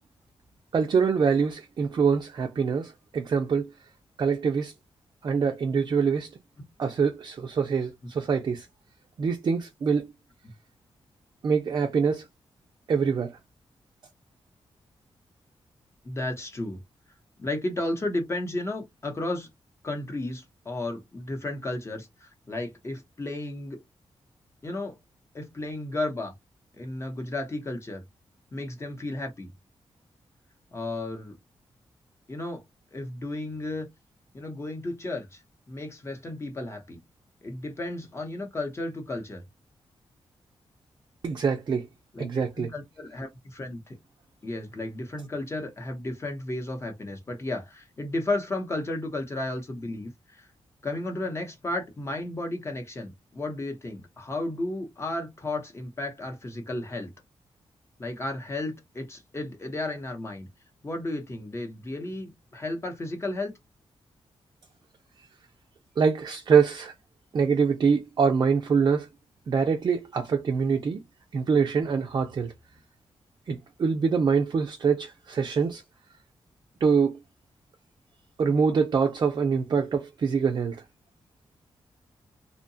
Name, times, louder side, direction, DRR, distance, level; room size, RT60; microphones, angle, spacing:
voice 1, 0.7-3.7 4.2-4.7 5.2-6.3 6.8-8.7 9.2-10.1 11.4-12.3 12.9-13.4 41.2-41.9 42.2-42.7 66.0-66.9 67.3-69.1 69.5-71.0 71.3-72.5 73.5-75.8 76.8-77.2 78.4-80.8, right 6 dB, 45° right, 0.4 m, -24 dB
voice 2, 16.0-16.8 17.4-19.5 19.8-23.8 24.6-24.9 25.3-26.3 26.8-28.0 28.5-29.5 30.7-31.4 32.3-32.6 32.9-33.9 34.3-35.4 35.7-37.0 37.4-39.4 42.1-44.0 44.4-50.5 50.8-57.1 58.0-60.5 60.8-63.5, left 2 dB, 25° left, 0.8 m, -33 dB
2.7 x 2.1 x 2.6 m
wide cardioid pair, 160°, 10 cm